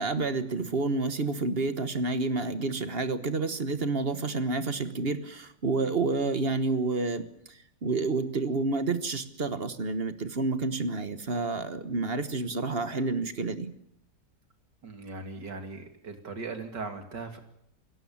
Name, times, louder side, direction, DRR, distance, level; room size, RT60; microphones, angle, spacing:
voice 1, 0.0-13.8, right 3 dB, 35° right, 10 dB, 1.3 m, -29 dB
voice 2, 14.8-17.4, right 3 dB, 70° right, 6 dB, 3.2 m, -39 dB
28.5 x 16.5 x 7.3 m, 0.72 s
omnidirectional pair, 1.9 m